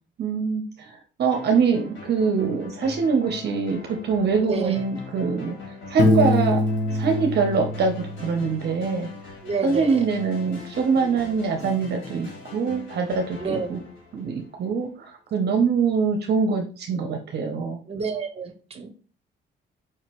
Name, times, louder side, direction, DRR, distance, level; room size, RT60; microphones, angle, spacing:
voice 1, 0.2-5.5 5.9-6.6 6.9-9.1 9.6-13.8 14.1-17.8 18.8-18.9, right 5 dB, 55° right, 3 dB, 0.7 m, -24 dB
sound 1, 1.3-14.8, left 3 dB, 90° left, 1.5 m, -41 dB
voice 2, 4.4-4.8 9.4-10.1 13.4-13.7 17.9-18.9, right 5 dB, 30° right, 7 dB, 0.9 m, -29 dB
Piano, 6.0-8.7, left 2 dB, 65° left, 1.0 m, -24 dB
4.7 x 2.9 x 2.9 m, 0.37 s
cardioid pair, 90°, 20 cm